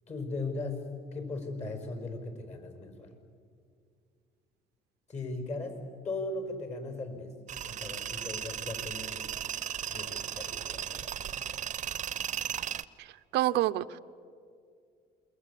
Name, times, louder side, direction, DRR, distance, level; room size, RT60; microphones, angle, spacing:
voice 1, 0.1-0.8 1.1-3.1 5.1-5.8 6.0-7.3 7.7-9.3 9.9-11.4, left 3 dB, 40° left, 6 dB, 5.4 m, -38 dB
Tools, 7.5-12.8, right 9 dB, 45° right, 0.7 m, -36 dB
voice 2, 13.3-14.0, right 15 dB, 85° right, 13 dB, 0.7 m, -27 dB
27.5 x 22.5 x 8.4 m, 2.3 s
cardioid pair, 110°, 17 cm